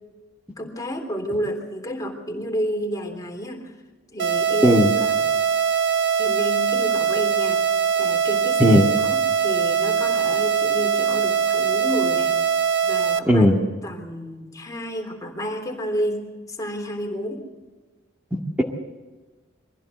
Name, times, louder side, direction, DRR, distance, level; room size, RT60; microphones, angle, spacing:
voice 1, 0.6-3.7 4.1-4.8 6.2-7.6 8.0-8.8 9.1-12.3 12.8-13.5 13.8-17.5, equal, 20° left, 2 dB, 3.5 m, -30 dB
sound 1, 4.2-13.2, right 7 dB, 60° right, 0.9 m, -22 dB
voice 2, 13.2-13.6, equal, 10° right, -2 dB, 2.0 m, -15 dB
23.5 x 15.5 x 8.0 m, 1.3 s
head